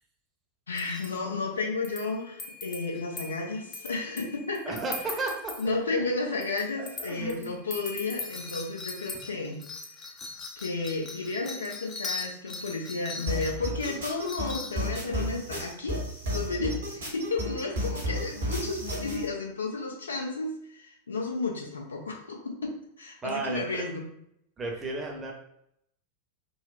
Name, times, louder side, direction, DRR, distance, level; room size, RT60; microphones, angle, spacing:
voice 1, 0.7-4.6 5.6-9.6 10.6-22.7 23.0-24.1, left 3 dB, 70° left, 0 dB, 0.6 m, -32 dB
sound 1, 0.7-1.1 1.8-5.7 6.4-15.0, left 3 dB, 25° left, 0.5 m, -40 dB
voice 2, 4.7-5.6 6.8-7.5 23.2-23.8 24.6-25.3, right 3 dB, 20° right, 0 dB, 0.7 m, -33 dB
sound 2, 13.3-19.3, equal, 65° right, 1.0 m, -32 dB
3.9 x 2.1 x 2.4 m, 0.75 s
figure-of-eight pair, 90°, 0 cm